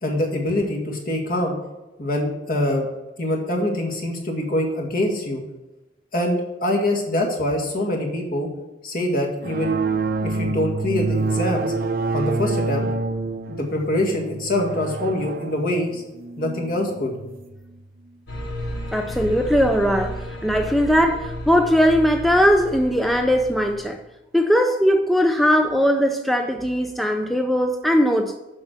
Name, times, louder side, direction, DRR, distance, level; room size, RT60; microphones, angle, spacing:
voice 1, 0.0-1.6 2.0-2.9 3.2-5.4 6.1-8.5 8.8-9.8 10.2-11.7 12.1-12.9 13.5-16.0 16.4-17.2, left 1 dB, 50° left, 0 dB, 1.9 m, -24 dB
sound 1, 9.4-17.6, right 3 dB, 55° right, 0.6 m, -27 dB
sound 2, 18.3-24.0, equal, 80° left, 2.6 m, -33 dB
voice 2, 18.9-24.0 24.3-28.3, equal, ahead, 4 dB, 0.4 m, -19 dB
7.5 x 6.1 x 6.6 m, 1.0 s
head